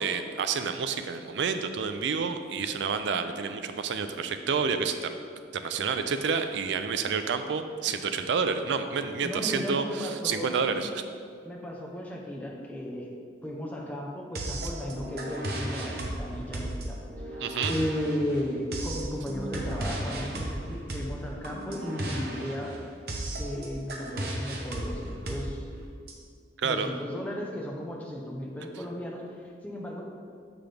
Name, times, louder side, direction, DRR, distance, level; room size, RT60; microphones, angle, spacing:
voice 1, 0.0-5.1 5.5-10.9 17.4-17.7 26.6-26.9, right 5 dB, 75° right, 9 dB, 0.4 m, -29 dB
voice 2, 9.2-10.7 11.4-22.8 23.4-25.7 26.6-30.0, equal, 10° left, -1 dB, 0.7 m, -35 dB
sound 1, 14.4-26.1, right 1 dB, 55° right, 0.8 m, -35 dB
6.9 x 5.9 x 3.3 m, 2.2 s
head